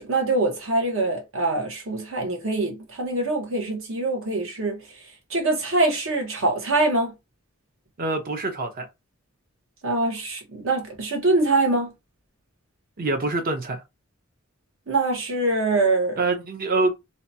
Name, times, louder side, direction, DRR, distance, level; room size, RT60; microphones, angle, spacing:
voice 1, 0.0-4.8 5.3-7.1 9.8-11.9 14.9-16.2, right 2 dB, 65° right, 1.0 m, -24 dB
voice 2, 8.0-8.9 13.0-13.8 16.2-17.0, right 3 dB, 45° right, 0.6 m, -25 dB
2.8 x 2.2 x 2.7 m
head